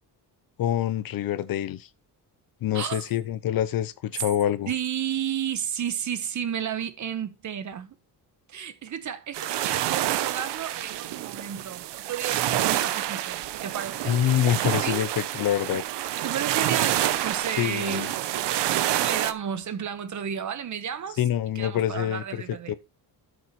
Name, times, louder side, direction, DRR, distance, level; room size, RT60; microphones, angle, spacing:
voice 1, 0.6-1.9 2.6-4.7 14.1-15.8 17.6-18.1 21.2-22.4 22.7-22.8, left 11 dB, 55° left, 0.7 m, -26 dB
voice 2, 4.7-7.9 8.5-14.2 14.8-15.1 16.2-18.5 19.0-21.2 21.5-22.8, right 8 dB, 45° right, 1.2 m, -32 dB
sound 1, 9.3-19.3, right 13 dB, 85° right, 0.9 m, -28 dB
12.5 x 6.5 x 3.1 m
cardioid pair, 150°, 41 cm